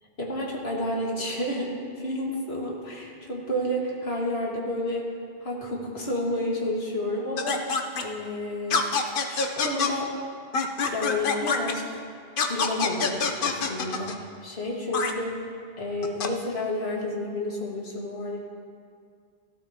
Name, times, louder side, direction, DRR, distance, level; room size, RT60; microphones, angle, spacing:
voice 1, 0.2-5.1 5.4-8.9 9.3-10.1 10.8-12.0 12.5-14.2 14.4-15.5 15.8-18.4, left 1 dB, 85° left, -2 dB, 2.1 m, -30 dB
sound 1, 7.4-8.0 8.7-9.9 10.5-11.7 12.4-14.2 14.9-15.1 16.0-16.3, left 5 dB, 60° left, 0.9 m, -25 dB
15.0 x 13.0 x 2.9 m, 2.2 s
omnidirectional pair, 1.0 m